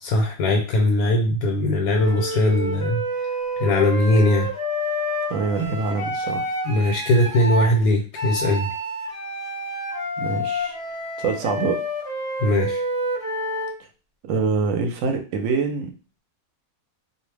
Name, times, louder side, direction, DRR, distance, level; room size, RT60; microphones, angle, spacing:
voice 1, 0.0-3.0 3.6-4.5 6.7-8.7 12.4-12.8, left 1 dB, 85° left, 1 dB, 1.1 m, -20 dB
Wind instrument woodwind instrument, 1.9-7.7 8.1-13.8, equal, 20° left, 0.6 m, -28 dB
voice 2, 5.3-6.5 10.2-10.7 11.2-11.8 14.2-15.9, right 4 dB, 70° right, 4 dB, 0.9 m, -25 dB
2.4 x 2.0 x 3.2 m, 0.35 s
omnidirectional pair, 1.5 m